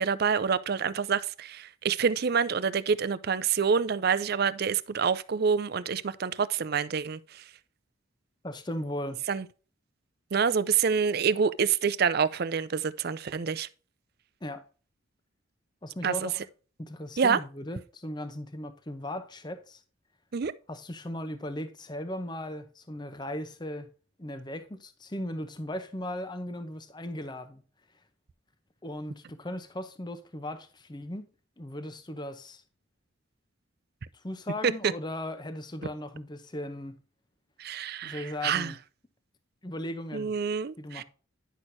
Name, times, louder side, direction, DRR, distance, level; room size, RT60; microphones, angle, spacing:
voice 1, 0.0-7.4 9.3-9.5 10.3-13.7 16.0-16.3 17.2-17.4 20.3-20.5 34.6-34.9 37.6-38.7 40.1-41.0, right 6 dB, 45° right, 0.4 m, -27 dB
voice 2, 8.4-9.2 14.4-14.6 15.8-16.4 16.8-19.8 20.7-23.9 24.2-27.6 28.8-31.3 31.6-32.6 34.1-37.0 38.0-38.8 39.6-40.3 40.8-41.0, left 1 dB, 20° left, 0.7 m, -37 dB
10.0 x 6.3 x 2.7 m
head